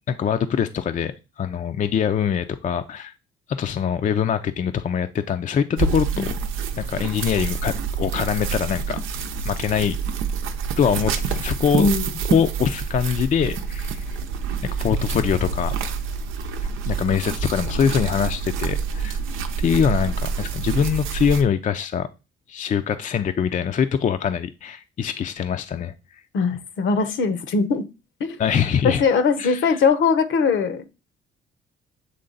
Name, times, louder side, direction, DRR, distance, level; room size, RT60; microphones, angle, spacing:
voice 1, 0.1-3.1 3.5-6.3 6.8-9.0 9.4-10.0 10.8-11.9 12.3-14.2 14.6-15.7 16.9-19.2 19.6-22.1 22.5-25.9 28.4-29.0 29.4-29.8, left 7 dB, 40° left, 0.4 m, -23 dB
sound 1, 5.8-21.4, right 5 dB, 90° right, 0.7 m, -27 dB
voice 2, 11.7-12.1 26.3-27.8 28.2-28.4 28.8-30.9, left 5 dB, 70° left, 0.9 m, -21 dB
7.8 x 3.3 x 3.9 m
cardioid pair, 90°, 20 cm